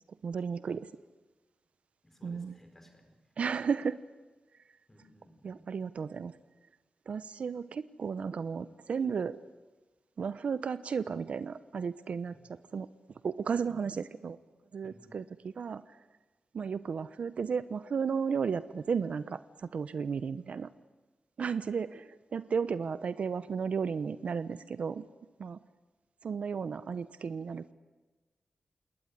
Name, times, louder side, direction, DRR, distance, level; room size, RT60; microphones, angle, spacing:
voice 1, 0.2-0.9 2.2-2.5 3.4-4.0 5.4-6.4 7.1-9.4 10.2-12.9 13.2-14.4 14.7-16.0 16.5-20.7 21.4-25.1 25.4-25.6 26.2-27.7, right 6 dB, 65° right, 14 dB, 0.8 m, -34 dB
voice 2, 2.0-3.1 4.9-5.6 14.8-15.2, equal, 15° left, 5 dB, 4.6 m, -57 dB
28.0 x 20.5 x 9.8 m, 1.2 s
wide cardioid pair, 160°, 2 cm